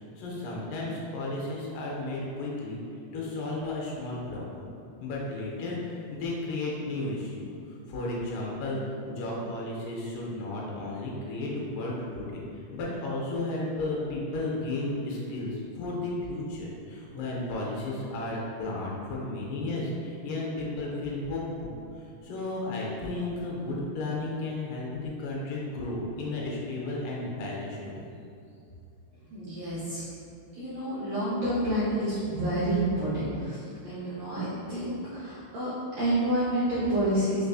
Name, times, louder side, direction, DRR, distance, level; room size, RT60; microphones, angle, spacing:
voice 1, 0.2-2.8 3.1-4.7 5.0-7.5 7.9-8.8 9.1-21.8 22.2-28.1, left 2 dB, 85° left, -4 dB, 2.4 m, -33 dB
voice 2, 29.3-30.1 30.5-37.4, right 1 dB, 80° right, -10 dB, 1.5 m, -29 dB
5.4 x 2.6 x 2.3 m, 2.5 s
omnidirectional pair, 3.9 m